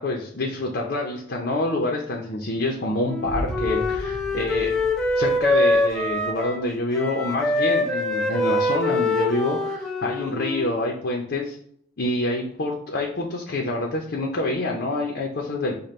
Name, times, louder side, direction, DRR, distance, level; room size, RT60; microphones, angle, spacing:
voice 1, 0.0-4.8 5.2-11.6 12.0-15.8, left 2 dB, 55° left, 0 dB, 0.6 m, -27 dB
Wind instrument woodwind instrument, 3.1-6.7 6.9-10.9, left 2 dB, 5° left, 0.4 m, -24 dB
sound 1, 3.2-6.2, right 1 dB, 75° right, 0.7 m, -35 dB
5.1 x 2.2 x 4.2 m, 0.66 s
head